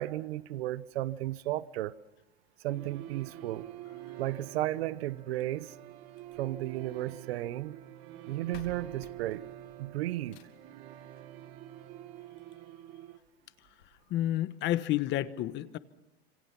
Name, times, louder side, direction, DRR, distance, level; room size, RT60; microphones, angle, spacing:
voice 1, 0.0-1.9 2.6-3.7 4.2-5.7 6.4-7.8 8.3-9.5 9.8-10.5, right 15 dB, 80° right, 0.9 m, -34 dB
sound 1, 2.7-13.2, right 13 dB, 50° right, 1.6 m, -47 dB
sound 2, 6.1-7.4 8.2-8.3 8.5-10.8 12.1-12.2 12.7-12.8 13.1-13.2 13.8-13.9, left 4 dB, 80° left, 4.0 m, -53 dB
voice 2, 14.1-15.8, left 13 dB, 35° left, 1.2 m, -30 dB
27.0 x 25.0 x 6.0 m
supercardioid pair, 140°, 31 cm